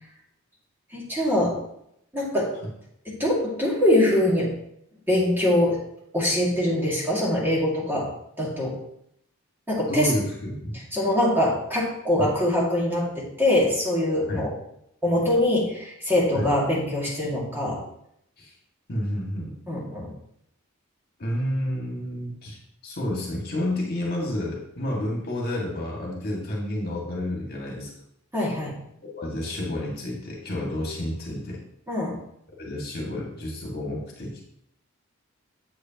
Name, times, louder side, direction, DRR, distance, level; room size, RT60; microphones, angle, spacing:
voice 1, 0.9-1.6 2.1-2.5 3.1-4.5 5.1-5.8 6.1-8.1 8.4-8.8 9.7-10.1 10.9-14.5 15.0-17.8 19.7-20.1 28.3-28.8 31.9-32.2, left 1 dB, 10° right, -5 dB, 2.0 m, -23 dB
voice 2, 9.9-10.8 12.2-12.3 14.3-14.5 16.3-16.5 18.4-18.5 18.9-19.5 21.2-22.6 22.8-27.9 29.1-31.6 32.6-34.4, left 1 dB, 45° left, -2 dB, 1.9 m, -30 dB
8.3 x 7.9 x 2.9 m, 0.74 s
head